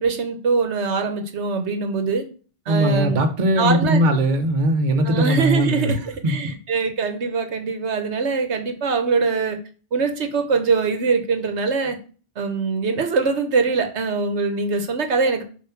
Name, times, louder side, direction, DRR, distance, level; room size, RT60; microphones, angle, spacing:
voice 1, 0.0-2.2 2.7-3.2 3.6-4.0 5.0-9.6 9.9-12.0 12.4-15.4, right 4 dB, 75° right, 1.2 m, -23 dB
voice 2, 2.7-6.0 6.2-6.3, right 1 dB, 45° right, 1.0 m, -19 dB
7.0 x 2.8 x 5.8 m
omnidirectional pair, 1.2 m